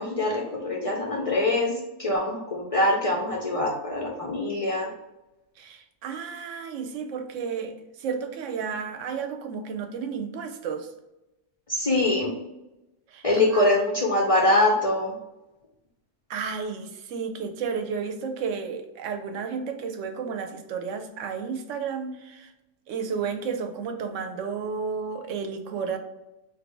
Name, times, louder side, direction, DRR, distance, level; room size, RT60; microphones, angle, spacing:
voice 1, 0.0-4.9 11.7-12.3 13.2-15.1, left 2 dB, 50° left, -1 dB, 0.4 m, -24 dB
voice 2, 5.6-10.9 13.1-13.6 16.3-22.5 22.9-26.0, right 6 dB, 70° right, 6 dB, 0.9 m, -32 dB
3.1 x 2.6 x 4.5 m, 0.97 s
omnidirectional pair, 1.4 m